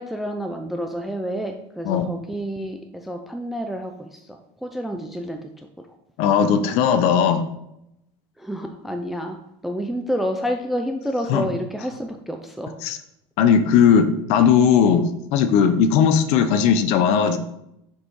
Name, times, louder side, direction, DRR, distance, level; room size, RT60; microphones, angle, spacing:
voice 1, 0.0-5.7 8.4-12.8, equal, ahead, 4 dB, 0.4 m, -29 dB
voice 2, 6.2-7.4 11.3-11.5 12.8-13.0 13.4-17.4, left 7 dB, 50° left, 9 dB, 0.7 m, -18 dB
6.4 x 5.5 x 4.7 m, 0.82 s
cardioid pair, 180°, 14 cm